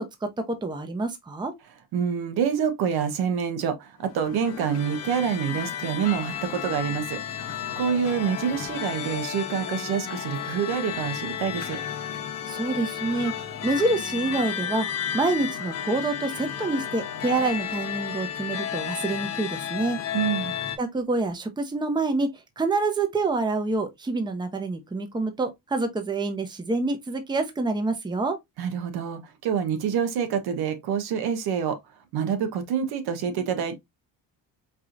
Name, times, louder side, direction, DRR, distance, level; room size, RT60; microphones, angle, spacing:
voice 1, 0.0-1.5 12.5-14.9 15.1-20.0 20.8-28.4, right 3 dB, 10° right, 0.7 m, -27 dB
voice 2, 1.9-11.8 20.1-20.6 28.6-31.8 32.1-33.8, right 7 dB, 75° right, 1.1 m, -27 dB
sound 1, 4.0-20.8, left 9 dB, 40° left, 0.9 m, -33 dB
4.7 x 2.9 x 2.5 m
cardioid pair, 125°, 38 cm